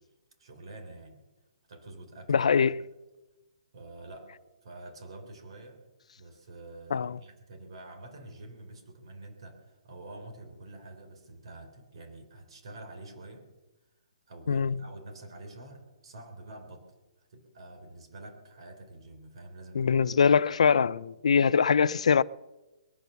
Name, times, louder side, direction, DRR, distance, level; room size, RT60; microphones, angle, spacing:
voice 1, 0.4-1.2 1.7-2.5 3.7-4.3 4.6-5.8 6.2-13.5 14.3-16.9 17.3-20.1, right 2 dB, 55° right, 3.6 m, -47 dB
voice 2, 2.3-2.8 6.9-7.1 14.5-14.8 19.8-22.2, left 6 dB, 85° left, 0.4 m, -23 dB
21.5 x 9.2 x 6.9 m
hypercardioid pair, 175°, 3 cm